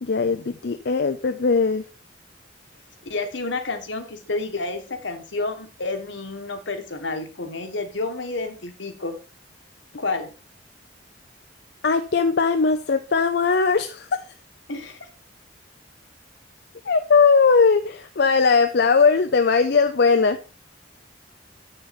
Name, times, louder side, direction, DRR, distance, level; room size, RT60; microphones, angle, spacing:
voice 1, 0.0-1.8 11.8-14.2 16.9-20.4, left 5 dB, 60° left, 8 dB, 0.5 m, -19 dB
voice 2, 3.0-9.1 10.0-10.3 14.7-15.0, left 3 dB, 75° left, 6 dB, 1.5 m, -30 dB
7.9 x 6.8 x 4.2 m, 0.33 s
head